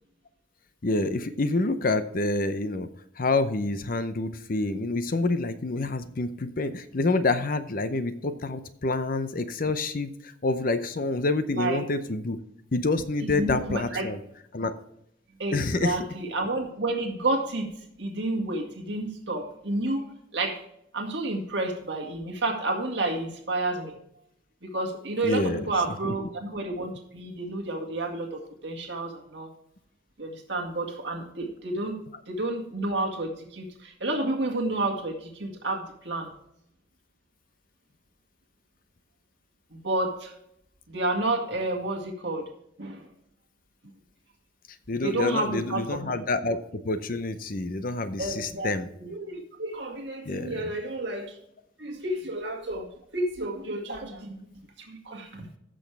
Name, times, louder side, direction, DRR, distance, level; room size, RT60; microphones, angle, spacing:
voice 1, 0.8-2.9 3.2-12.4 12.7-14.2 14.5-14.7 15.5-16.0 25.2-25.7 26.0-26.1 44.9-48.9 50.2-50.7, left 2 dB, 45° left, 11 dB, 0.7 m, -27 dB
voice 2, 13.2-14.1 15.4-17.7 18.0-20.0 20.3-20.6 20.9-24.0 24.7-29.5 30.2-32.0 32.3-36.3 39.8-40.3 40.9-42.4 42.8-43.1 45.0-46.2 48.2-48.7 49.0-51.4 51.8-52.9 53.1-54.5 54.8-55.5, right 2 dB, 60° right, 2 dB, 2.0 m, -30 dB
15.5 x 6.3 x 3.4 m, 0.74 s
head